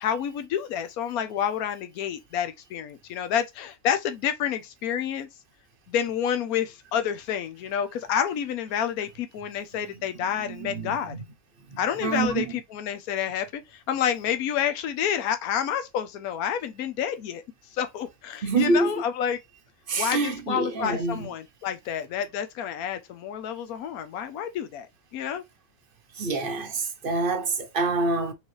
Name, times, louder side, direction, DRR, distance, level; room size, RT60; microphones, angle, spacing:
voice 1, 0.0-5.3 5.9-11.2 11.8-17.4 17.7-19.4 20.0-24.9 25.1-25.4, left 9 dB, 75° left, 1.2 m, -29 dB
voice 2, 10.4-11.2 11.7-12.5 18.4-18.9 19.9-21.3 26.1-28.3, right 3 dB, 45° right, 0.8 m, -27 dB
4.4 x 3.3 x 3.1 m
omnidirectional pair, 1.6 m